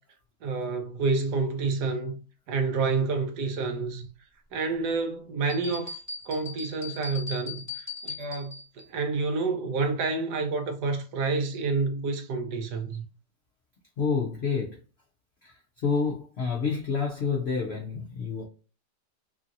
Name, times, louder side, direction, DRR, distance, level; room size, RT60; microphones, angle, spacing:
voice 1, 0.4-2.2 2.5-4.1 4.5-6.0 6.3-13.1, right 4 dB, 75° right, 1.2 m, -29 dB
sound 1, 5.5-8.8, left 4 dB, 15° left, 0.5 m, -39 dB
voice 2, 14.0-14.8 15.4-18.4, left 5 dB, 75° left, 0.5 m, -29 dB
3.0 x 2.7 x 2.5 m
omnidirectional pair, 1.9 m